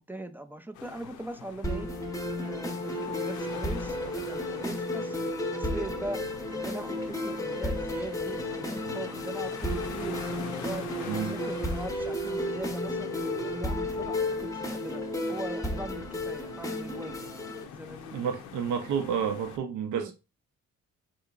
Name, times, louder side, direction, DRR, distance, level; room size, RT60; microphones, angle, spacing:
voice 1, 0.0-1.9 2.4-5.2 5.5-6.2 6.5-10.2 10.6-15.0 15.3-17.3 17.7-18.3 20.0-20.1, right 1 dB, 5° right, 0.3 m, -41 dB
sound 1, 0.7-19.6, left 8 dB, 90° left, 0.6 m, -45 dB
sound 2, 1.6-17.6, left 1 dB, 10° left, 0.7 m, -33 dB
voice 2, 11.1-11.4 18.1-20.1, right 7 dB, 80° right, 0.7 m, -30 dB
3.9 x 2.8 x 2.3 m
cardioid pair, 90°, 30 cm